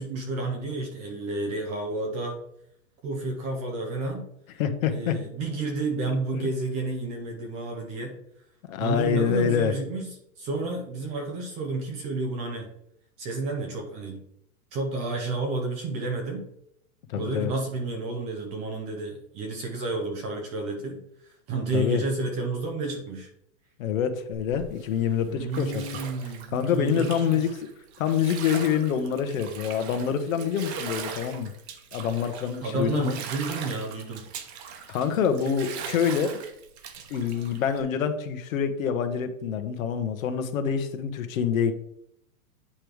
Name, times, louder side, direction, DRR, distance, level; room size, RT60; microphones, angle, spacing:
voice 1, 0.0-2.4 3.0-4.3 4.9-8.1 8.8-12.7 13.2-14.3 14.7-16.5 17.1-23.3 25.3-27.5 32.6-34.3, right 3 dB, 15° right, 2 dB, 0.5 m, -31 dB
voice 2, 4.6-5.2 6.4-6.5 8.7-9.7 17.1-17.5 21.7-22.0 23.8-25.8 26.5-27.7 28.0-31.5 31.9-33.2 34.9-36.4 37.1-41.7, left 7 dB, 65° left, 8 dB, 1.1 m, -26 dB
Bathtub (filling or washing), 24.3-37.8, right 6 dB, 45° right, 1.1 m, -40 dB
8.8 x 3.1 x 5.0 m, 0.76 s
supercardioid pair, 155°, 44 cm